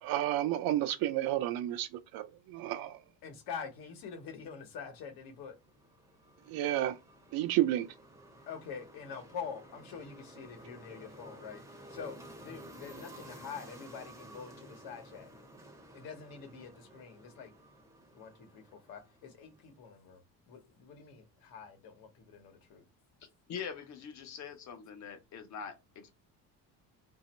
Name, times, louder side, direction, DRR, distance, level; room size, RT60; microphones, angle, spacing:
voice 1, 0.0-3.0 6.5-7.0 7.3-7.9, right 13 dB, 70° right, 0.6 m, -31 dB
voice 2, 3.2-5.5 8.5-11.6 11.9-15.3 15.9-17.5 18.1-18.6 18.9-20.2 20.5-22.8, left 6 dB, 70° left, 1.2 m, -45 dB
sound 1, 5.3-19.6, right 1 dB, 10° right, 0.6 m, -53 dB
voice 3, 23.5-26.1, left 7 dB, 50° left, 0.8 m, -43 dB
2.9 x 2.7 x 4.2 m
cardioid pair, 165°, 37 cm